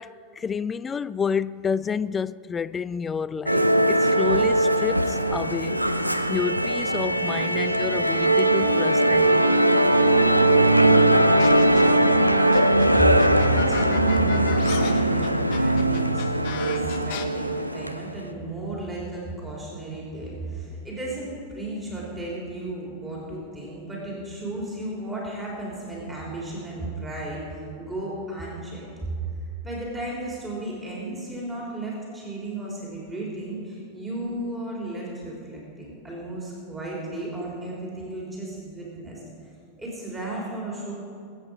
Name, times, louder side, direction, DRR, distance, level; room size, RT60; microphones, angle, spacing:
voice 1, 0.0-5.8 6.3-9.6, left 6 dB, 20° left, 0.3 m, -29 dB
Musical instrument, 3.5-18.1, right 1 dB, 90° right, 0.6 m, -20 dB
sound 1, 11.4-12.0 12.5-17.2, left 11 dB, 50° left, 1.1 m, -36 dB
voice 2, 12.9-29.2 29.6-39.2 39.8-40.9, right 1 dB, 15° right, 3.8 m, -34 dB
22.0 x 8.8 x 5.2 m
figure-of-eight pair, 90°, 0 cm